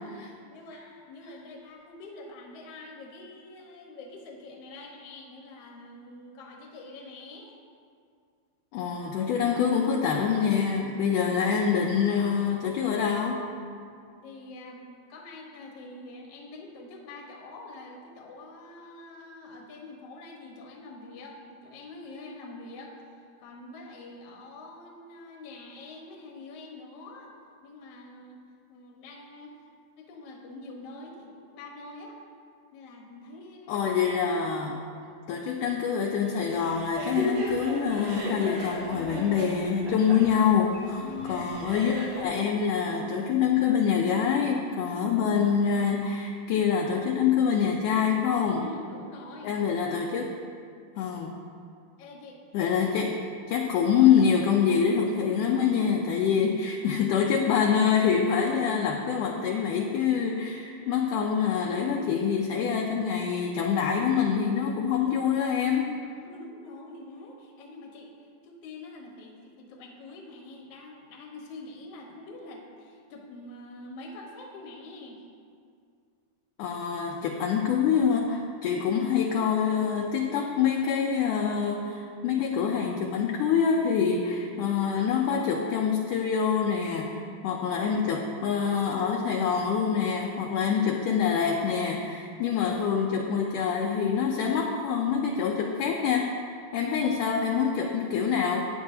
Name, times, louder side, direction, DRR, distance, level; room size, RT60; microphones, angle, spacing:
voice 1, 0.0-7.6 14.2-27.3 27.6-28.4 28.7-29.5 30.0-32.2 32.7-33.9 41.0-41.6 44.7-45.2 48.6-49.6 52.0-52.4 55.3-55.5 66.0-75.2 96.7-97.1, left 2 dB, 60° left, 0 dB, 1.7 m, -45 dB
voice 2, 8.7-13.4 33.7-34.8 35.3-48.6 49.4-50.3 51.0-51.3 52.5-53.2 53.5-66.0 76.6-98.7, left 7 dB, 80° left, 0 dB, 1.9 m, -25 dB
sound 1, 36.5-42.2, equal, 70° right, 3.2 m, -35 dB
14.0 x 9.6 x 2.8 m, 2.3 s
omnidirectional pair, 4.4 m